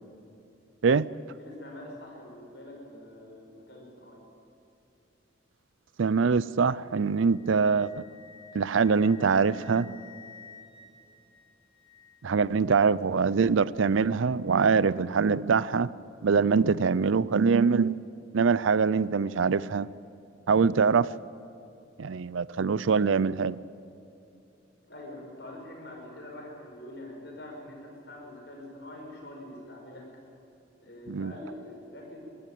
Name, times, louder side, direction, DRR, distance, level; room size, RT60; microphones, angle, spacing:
voice 1, 1.4-4.2 24.9-30.1 30.8-32.2, left 1 dB, 60° left, 0 dB, 6.1 m, -44 dB
voice 2, 6.0-8.0 8.5-10.0 12.2-15.9 16.2-18.0 18.3-19.9 20.5-21.1 22.0-23.6 31.1-31.3, right 5 dB, 85° right, 19 dB, 0.5 m, -24 dB
Wind instrument woodwind instrument, 6.5-12.5, left 5 dB, 30° left, 3.7 m, -53 dB
22.5 x 14.5 x 9.1 m, 2.7 s
head